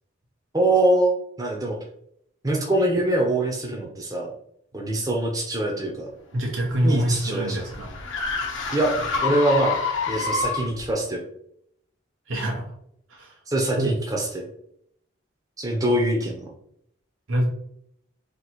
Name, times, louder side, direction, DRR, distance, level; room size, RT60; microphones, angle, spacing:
voice 1, 0.5-1.1 1.4-1.8 2.4-4.3 4.7-6.1 6.8-7.6 8.7-9.8 10.1-11.2 13.5-14.5 15.6-16.5, right 1 dB, 20° right, -1 dB, 0.8 m, -23 dB
voice 2, 6.3-7.9 12.3-12.7 13.1-13.4 13.7-13.9 17.3-17.4, right 1 dB, 90° right, -2 dB, 1.0 m, -25 dB
sound 1, 6.4-10.9, left 4 dB, 85° left, 0.9 m, -28 dB
3.1 x 2.9 x 4.2 m, 0.70 s
head